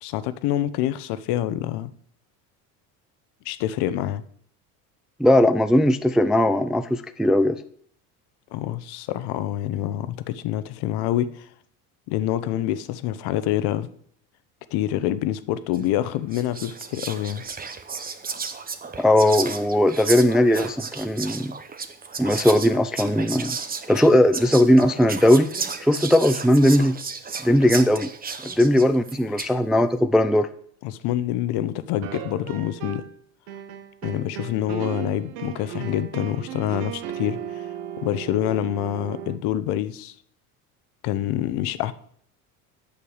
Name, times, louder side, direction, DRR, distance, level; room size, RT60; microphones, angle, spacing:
voice 1, 0.0-1.9 3.4-4.2 8.5-11.5 12.1-13.9 14.7-17.4 30.8-33.0 34.0-37.7 38.0-40.2 41.0-41.9, left 12 dB, 60° left, 0.9 m, -26 dB
voice 2, 5.2-7.6 19.0-21.5 22.2-23.6 23.9-25.5 25.8-27.0 27.4-28.1 28.4-30.5, left 1 dB, ahead, 0.3 m, -18 dB
Whispering, 15.7-16.0 16.3-29.6, right 5 dB, 20° right, 1.0 m, -34 dB
sound 1, 32.0-33.2 33.5-39.4, right 10 dB, 65° right, 1.1 m, -35 dB
8.7 x 6.8 x 6.5 m
supercardioid pair, 85°, 44 cm